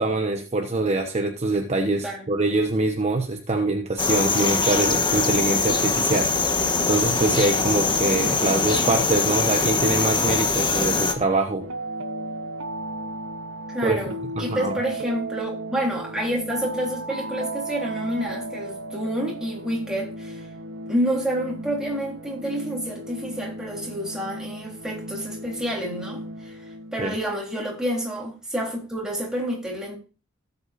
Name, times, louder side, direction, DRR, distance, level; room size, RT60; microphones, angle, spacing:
voice 1, 0.0-6.3 6.9-11.7 13.8-14.0 14.4-14.7 27.0-27.2, right 2 dB, 30° right, 1.1 m, -24 dB
sound 1, 4.0-11.1, left 3 dB, 20° left, 1.3 m, -22 dB
sound 2, 11.6-27.3, right 2 dB, 85° right, 1.1 m, -35 dB
voice 2, 13.7-20.5 20.9-30.0, equal, 5° right, 3.6 m, -29 dB
17.5 x 8.0 x 2.6 m
head